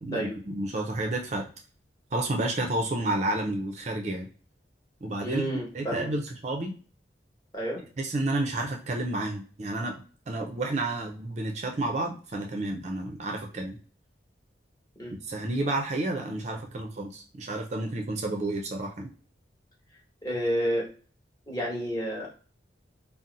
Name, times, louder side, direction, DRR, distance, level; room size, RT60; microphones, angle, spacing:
voice 1, 0.0-1.5 2.1-4.3 5.0-5.4 5.7-6.7 8.0-9.9 10.3-13.8 15.2-19.1, right 2 dB, 40° right, 2 dB, 0.5 m, -30 dB
voice 2, 5.2-6.1 7.5-7.8 15.0-15.2 20.2-20.9 21.5-22.3, equal, 20° left, -4 dB, 1.0 m, -30 dB
2.6 x 2.0 x 3.8 m, 0.39 s
head